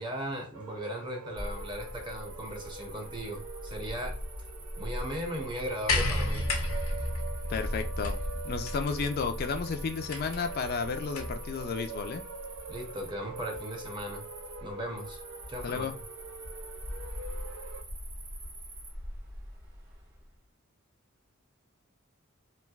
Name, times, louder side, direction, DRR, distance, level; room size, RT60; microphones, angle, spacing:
voice 1, 0.0-4.2 4.8-6.5 12.7-14.2 14.6-15.2 15.5-15.8, equal, 25° right, 2 dB, 0.7 m, -37 dB
sound 1, 0.5-17.8, right 4 dB, 85° right, 0.4 m, -45 dB
Cricket, 1.4-20.3, equal, 55° right, 1.4 m, -42 dB
sound 2, 5.9-11.5 12.6-12.7, left 1 dB, 90° left, 0.7 m, -33 dB
voice 2, 7.5-8.2 8.4-12.2 15.6-15.9, left 5 dB, 50° left, 6 dB, 0.3 m, -32 dB
3.1 x 2.5 x 2.3 m, 0.35 s
head